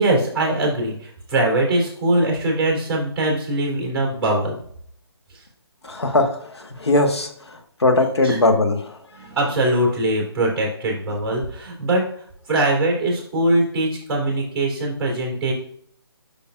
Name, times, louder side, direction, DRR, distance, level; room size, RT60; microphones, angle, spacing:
voice 1, 0.0-4.6 5.3-5.4 8.2-8.4 9.2-15.5, right 1 dB, 5° right, -2 dB, 2.8 m, -22 dB
voice 2, 5.8-9.0, left 2 dB, 80° left, 4 dB, 1.3 m, -20 dB
8.9 x 5.4 x 2.4 m, 0.62 s
figure-of-eight pair, 145°, 14 cm